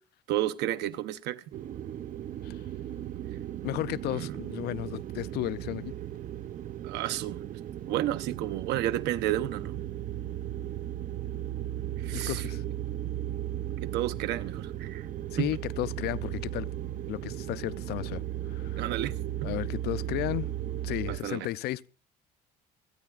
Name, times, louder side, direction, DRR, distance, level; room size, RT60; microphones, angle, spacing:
voice 1, 0.3-1.4 4.1-4.3 6.8-7.5 7.9-9.8 12.0-12.4 13.8-15.1 15.4-15.5 18.8-19.2 19.4-19.5 21.1-21.5, right 13 dB, 90° right, 0.8 m, -31 dB
sound 1, 1.5-21.2, right 12 dB, 50° right, 0.6 m, -36 dB
voice 2, 3.6-5.9 12.1-12.6 15.3-16.7 17.1-18.9 19.4-20.5 20.8-21.9, left 16 dB, 75° left, 0.5 m, -34 dB
27.5 x 9.6 x 2.4 m
cardioid pair, 110°, 17 cm